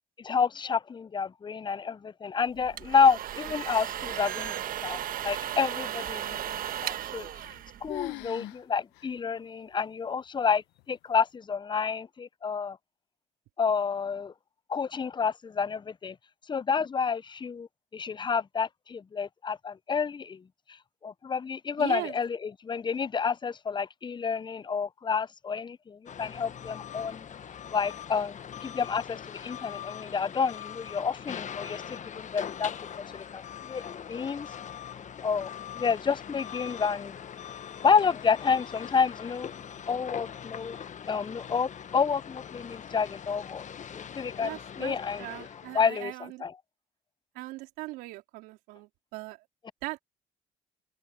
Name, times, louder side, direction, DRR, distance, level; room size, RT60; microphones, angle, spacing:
voice 1, 0.2-6.5 6.8-7.3 7.8-12.8 13.6-14.3 14.7-16.2 16.5-17.7 17.9-20.4 21.0-27.3 27.7-32.7 33.0-33.8 34.1-34.5 35.2-37.2 37.8-39.5 39.9-40.8 41.1-43.6 43.9-45.3 45.7-46.1 46.4-46.5, left 6 dB, 30° left, 0.6 m, -29 dB
sound 1, 2.5-8.3, right 11 dB, 65° right, 1.4 m, -35 dB
sound 2, 7.1-7.6 7.9-8.6 8.9-9.1 9.7-9.8 10.6-10.9, left 19 dB, 85° left, 1.0 m, -39 dB
voice 2, 21.8-22.2 44.4-46.4 47.3-49.4 49.8-50.0, right 20 dB, 85° right, 3.8 m, -39 dB
sound 3, 26.1-45.9, left 8 dB, 50° left, 1.4 m, -42 dB
hypercardioid pair, 55°, 16 cm